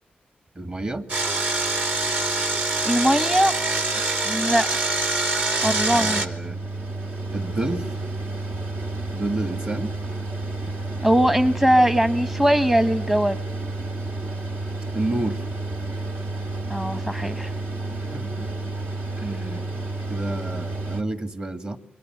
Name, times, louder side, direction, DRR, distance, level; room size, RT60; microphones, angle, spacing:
voice 1, 0.5-1.1 5.9-6.6 7.3-7.9 9.1-9.9 14.9-15.4 17.9-18.5 19.1-19.8 20.1-21.8, right 2 dB, 35° right, 9 dB, 2.4 m, -30 dB
Engine, 1.1-6.3, right 2 dB, 50° right, 3.0 m, -24 dB
voice 2, 2.8-3.5 4.0-4.7 5.6-6.2 11.0-13.4 16.7-17.5, equal, 10° right, 11 dB, 1.1 m, -20 dB
Mechanical fan, 5.6-21.0, right 2 dB, 70° right, 2.7 m, -31 dB
29.0 x 24.0 x 7.8 m, 0.71 s
cardioid pair, 80°, 3 cm